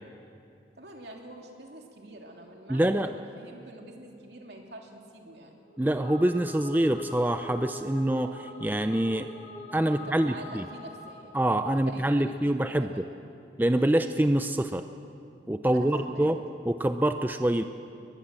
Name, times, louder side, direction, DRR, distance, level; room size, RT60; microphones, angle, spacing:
voice 1, 0.8-5.5 9.9-13.0 15.7-16.3, right 1 dB, 70° right, 1 dB, 3.0 m, -46 dB
voice 2, 2.7-3.1 5.8-9.3 9.7-10.7 11.3-13.1 13.6-14.9 15.5-16.4 16.6-17.6, right 1 dB, 10° right, 8 dB, 0.5 m, -25 dB
sound 1, 5.7-11.4, left 1 dB, 40° left, 3.4 m, -44 dB
21.5 x 20.5 x 7.6 m, 2.5 s
head